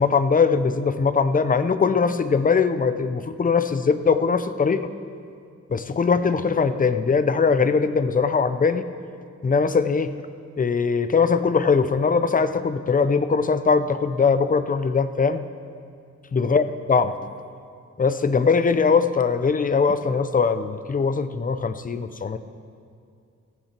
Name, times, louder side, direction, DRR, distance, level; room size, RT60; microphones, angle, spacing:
voice 1, 0.0-4.9 5.7-8.9 9.4-10.2 10.6-15.5 16.3-16.6 16.9-17.1 18.0-22.4, left 5 dB, 30° left, 11 dB, 0.5 m, -21 dB
15.0 x 15.0 x 4.4 m, 2.4 s
wide cardioid pair, 135°, 29 cm